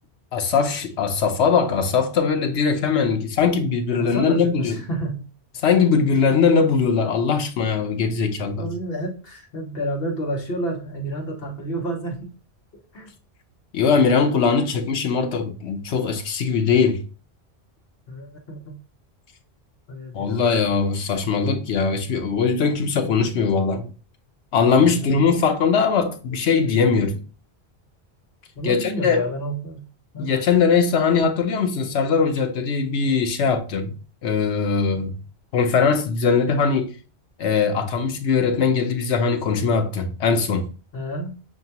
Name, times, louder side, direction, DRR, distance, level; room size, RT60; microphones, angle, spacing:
voice 1, 0.3-4.8 5.6-8.7 13.7-17.0 20.1-23.9 24.5-27.2 28.6-29.2 30.2-35.2 35.5-36.9 37.4-40.7, left 5 dB, 90° left, 1.0 m, -20 dB
voice 2, 4.0-5.2 8.6-12.3 12.9-13.1 18.1-18.8 19.9-20.6 24.8-25.4 28.5-29.9 30.1-30.4 40.9-41.3, right 1 dB, 65° left, 1.2 m, -30 dB
6.5 x 2.2 x 2.8 m
omnidirectional pair, 1.1 m